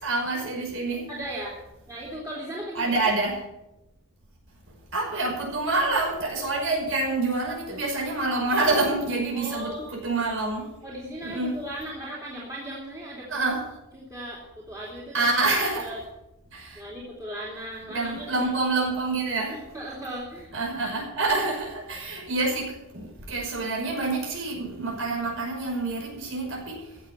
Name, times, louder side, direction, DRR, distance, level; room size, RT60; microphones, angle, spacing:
voice 1, 0.0-1.1 2.7-3.4 4.9-10.7 11.2-11.6 13.3-13.6 15.1-15.9 16.5-16.8 17.9-19.6 20.5-26.9, right 2 dB, 65° right, -1 dB, 5.8 m, -27 dB
voice 2, 1.1-1.5 1.9-2.9 9.3-9.9 10.8-13.3 13.9-15.3 15.7-16.0 16.8-18.5 19.5-20.5, right 1 dB, 15° right, -5 dB, 2.7 m, -37 dB
15.0 x 7.2 x 8.9 m, 0.92 s
head